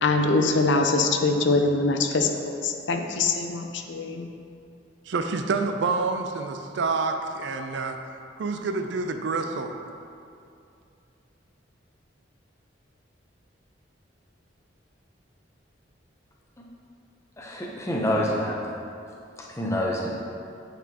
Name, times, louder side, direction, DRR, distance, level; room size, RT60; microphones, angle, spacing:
voice 1, 0.0-4.3, left 3 dB, 70° left, 5 dB, 0.5 m, -23 dB
voice 2, 5.1-8.0 8.4-9.7, right 4 dB, 65° right, 6 dB, 0.4 m, -27 dB
voice 3, 17.4-18.6 19.4-20.2, equal, 15° left, -2 dB, 0.7 m, -27 dB
9.0 x 4.2 x 2.9 m, 2.5 s
head